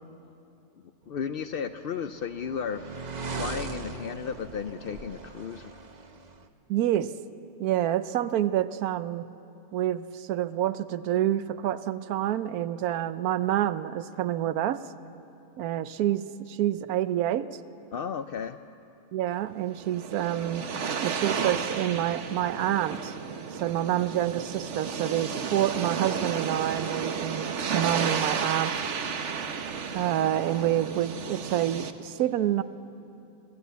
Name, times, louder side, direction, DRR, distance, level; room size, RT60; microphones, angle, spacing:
voice 1, 1.1-2.9 3.4-5.7 17.9-18.6, left 7 dB, 75° left, 9 dB, 0.5 m, -34 dB
sound 1, 1.5-6.5, right 4 dB, 35° right, 0.8 m, -39 dB
voice 2, 6.7-7.1 7.6-9.3 9.7-14.8 15.6-17.6 19.1-20.7 21.0-23.1 23.5-28.8 29.9-32.6, right 12 dB, 70° right, 14 dB, 1.1 m, -28 dB
sound 2, 19.7-31.9, right 6 dB, 55° right, 1.2 m, -32 dB
26.0 x 15.5 x 8.3 m, 2.8 s
omnidirectional pair, 1.7 m